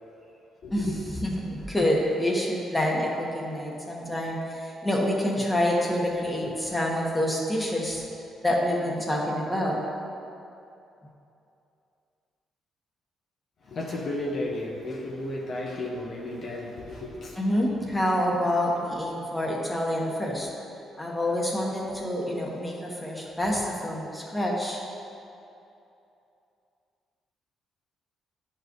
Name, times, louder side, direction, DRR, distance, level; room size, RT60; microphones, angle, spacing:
voice 1, 1.2-8.0 8.4-9.8 17.4-20.5 21.0-24.8, left 1 dB, 15° left, -3 dB, 1.4 m, -27 dB
voice 2, 13.6-17.4, left 1 dB, 55° left, -3 dB, 1.1 m, -33 dB
10.5 x 4.9 x 3.1 m, 2.7 s
cardioid pair, 90°, 0 cm